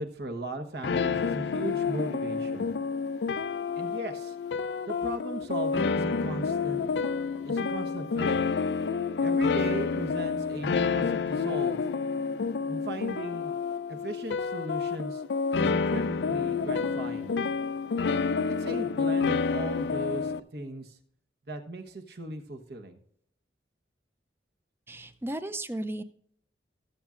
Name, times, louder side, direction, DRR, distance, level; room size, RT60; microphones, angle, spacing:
voice 1, 0.0-2.7 3.8-4.4 4.9-6.8 7.4-8.4 9.2-11.8 12.7-13.6 13.9-15.2 15.6-17.3 18.4-21.0 21.5-23.0, right 1 dB, 65° right, 6 dB, 1.1 m, -37 dB
sound 1, 0.8-20.4, left 5 dB, 75° left, 0.4 m, -29 dB
voice 2, 24.9-26.0, right 1 dB, 15° right, 12 dB, 0.5 m, -34 dB
19.0 x 7.3 x 2.5 m, 0.68 s
head